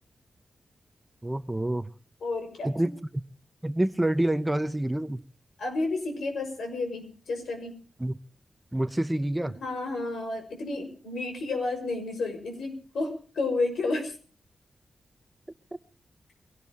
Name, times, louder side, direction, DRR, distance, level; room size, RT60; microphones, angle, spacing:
voice 1, 1.2-1.9 2.6-2.9 3.6-5.2 8.0-8.2 8.7-9.6, right 1 dB, 10° right, 0.8 m, -27 dB
voice 2, 2.2-2.7 5.6-7.8 9.4-14.2, left 3 dB, 80° left, 5.9 m, -31 dB
23.5 x 18.0 x 3.0 m
wide cardioid pair, 145°, 0 cm